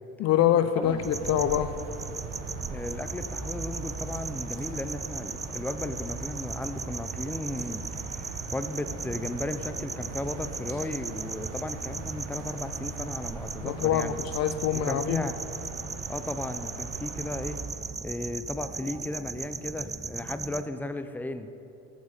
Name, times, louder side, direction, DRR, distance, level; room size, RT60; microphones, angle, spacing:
voice 1, 0.2-1.8 13.6-15.2, left 10 dB, 50° left, 13 dB, 0.6 m, -25 dB
sound 1, 0.8-17.6, right 3 dB, 90° right, 1.8 m, -41 dB
sound 2, 1.0-20.6, right 4 dB, 10° right, 0.3 m, -38 dB
voice 2, 2.6-14.2 14.8-15.4 16.1-17.6 18.0-21.5, left 2 dB, 5° left, 10 dB, 0.7 m, -35 dB
13.5 x 8.8 x 6.8 m, 2.9 s
hypercardioid pair, 70°, 35 cm